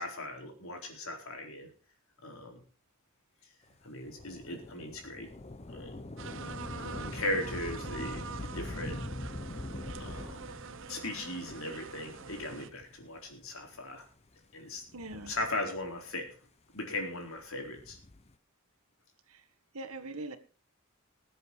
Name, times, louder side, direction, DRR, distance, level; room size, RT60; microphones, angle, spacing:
voice 1, 0.0-1.7 2.2-2.6 3.8-5.3 5.7-5.9 6.8-9.0 10.0-10.4 10.9-14.0 14.5-14.8 15.3-16.3 16.7-18.0, left 1 dB, 70° left, 4.1 m, -38 dB
Thunder / Rain, 4.0-13.0 13.8-13.9 14.8-16.1 17.6-18.3, left 2 dB, 30° left, 0.8 m, -43 dB
sound 1, 6.2-12.7, right 5 dB, 60° right, 0.9 m, -45 dB
voice 2, 14.9-15.3 19.3-19.4 19.7-20.4, right 2 dB, 85° right, 1.7 m, -41 dB
20.5 x 8.0 x 4.7 m
head